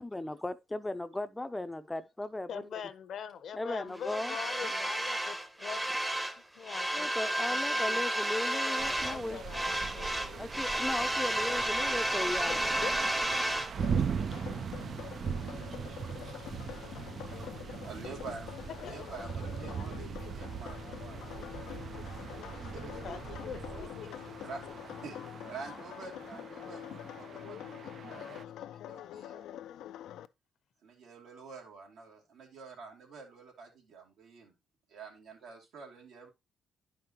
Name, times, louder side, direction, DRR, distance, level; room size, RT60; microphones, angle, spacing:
voice 1, 0.0-2.7 3.5-4.4 4.6-4.7 6.9-9.4 10.4-12.6, left 2 dB, 15° left, 0.5 m, -37 dB
voice 2, 2.5-5.8 6.6-7.1 7.5-8.8 9.0-10.5 12.5-12.9 18.8-19.0 23.0-24.1, left 7 dB, 65° left, 0.8 m, -43 dB
sound 1, 4.0-6.4 6.6-9.2 9.5-13.7, right 1 dB, 10° right, 0.8 m, -32 dB
sound 2, 8.8-28.4, right 6 dB, 50° right, 0.4 m, -40 dB
sound 3, 13.8-30.3, left 11 dB, 80° left, 0.4 m, -45 dB
voice 3, 17.8-21.2 22.5-23.4 23.7-23.8 24.4-25.2 25.5-29.5 30.8-34.5 34.9-36.3, right 4 dB, 80° right, 2.4 m, -48 dB
10.5 x 5.2 x 2.9 m
cardioid pair, 90°, 0 cm